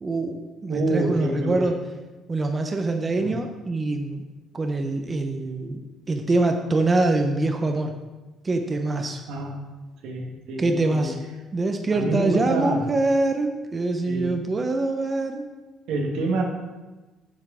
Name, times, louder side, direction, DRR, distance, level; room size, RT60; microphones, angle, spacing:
voice 1, 0.0-1.8 2.3-4.2 4.5-5.8 6.1-7.9 8.4-9.2 10.6-11.2 11.5-15.5, right 2 dB, 25° right, 5 dB, 0.6 m, -24 dB
voice 2, 0.7-1.6 3.2-3.3 9.3-9.6 10.0-11.1 11.9-12.9 14.1-14.3 15.9-16.4, right 2 dB, 80° right, 1 dB, 1.4 m, -27 dB
7.4 x 5.6 x 4.9 m, 1.2 s
cardioid pair, 115°, 0 cm